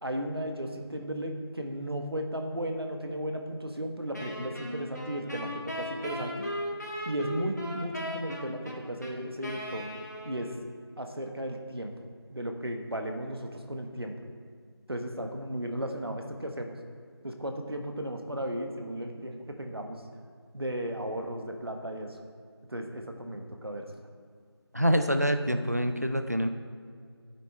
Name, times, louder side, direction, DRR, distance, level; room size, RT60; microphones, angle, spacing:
voice 1, 0.0-6.5 7.0-9.9 10.2-10.6 11.0-12.0 12.3-14.2 14.9-16.8 17.2-20.0 20.5-22.2 22.7-23.9, right 1 dB, 65° right, 4 dB, 1.3 m, -35 dB
Wind instrument woodwind instrument, 4.1-10.7, equal, 40° left, 1.7 m, -37 dB
voice 2, 24.7-26.5, equal, 40° right, 7 dB, 0.5 m, -26 dB
9.2 x 8.1 x 4.3 m, 2.1 s
figure-of-eight pair, 175°, 14 cm